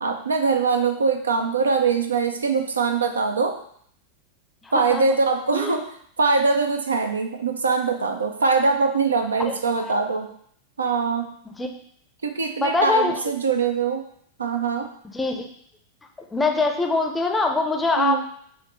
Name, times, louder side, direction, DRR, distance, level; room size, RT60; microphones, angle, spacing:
voice 1, 0.0-3.6 4.7-5.8 6.2-10.3 10.8-11.3 12.2-14.0 14.4-14.9 18.0-18.2, right 4 dB, 75° right, 5 dB, 0.4 m, -22 dB
voice 2, 4.6-5.0 5.5-5.8 9.5-9.6 9.8-10.0 11.6-11.7 12.6-13.2 15.1-15.5 16.3-18.3, left 3 dB, 10° left, 3 dB, 0.5 m, -23 dB
5.6 x 2.6 x 3.1 m, 0.64 s
figure-of-eight pair, 90°, 0 cm